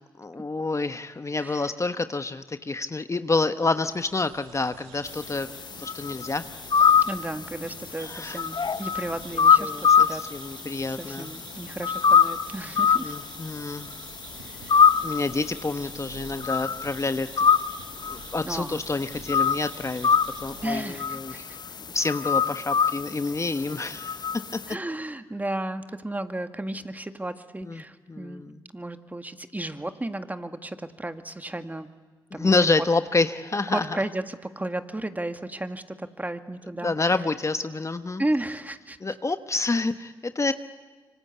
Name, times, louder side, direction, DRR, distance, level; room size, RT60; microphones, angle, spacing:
voice 1, 0.2-5.5 5.8-6.4 6.8-6.9 8.0-8.4 9.6-11.3 13.0-13.9 15.0-17.3 18.1-20.1 20.4-21.5 21.9-24.2 24.5-24.6 27.6-27.8 28.1-28.6 32.3-33.9 36.8-38.2 39.0-40.5, left 3 dB, 30° left, 10 dB, 1.1 m, -28 dB
voice 2, 1.3-1.7 7.1-10.2 11.0-13.1 14.4-14.8 18.4-18.8 20.6-21.6 24.7-28.4 28.7-31.9 32.3-32.5 33.7-36.9 38.2-39.2, right 1 dB, 15° right, 8 dB, 1.9 m, -34 dB
sound 1, 3.8-21.5, right 8 dB, 85° right, 1.6 m, -48 dB
sound 2, 5.2-10.7 11.0-24.7, left 7 dB, 50° left, 0.8 m, -23 dB
26.0 x 24.5 x 8.3 m, 1.4 s
hypercardioid pair, 40°, 10 cm